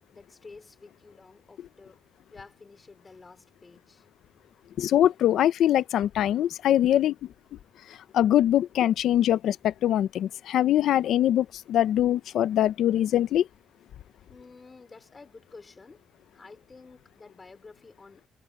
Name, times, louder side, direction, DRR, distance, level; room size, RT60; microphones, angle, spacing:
voice 1, 0.0-2.0 2.3-4.1 14.3-16.1 16.3-18.3, left 4 dB, 25° left, 3.9 m, -50 dB
voice 2, 4.8-7.2 8.1-13.5, left 11 dB, 80° left, 0.6 m, -23 dB
cardioid pair, 160°, 0 cm